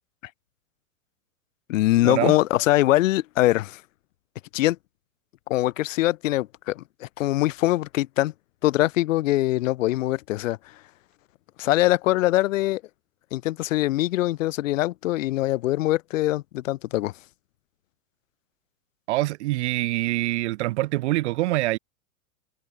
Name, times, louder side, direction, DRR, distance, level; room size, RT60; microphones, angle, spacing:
voice 1, 1.7-3.8 4.5-4.8 5.5-8.3 8.6-10.6 11.6-12.8 13.3-17.1, left 16 dB, 60° left, 0.6 m, -23 dB
voice 2, 19.1-21.8, right 18 dB, 50° right, 0.6 m, -25 dB
figure-of-eight pair, 100°, 45 cm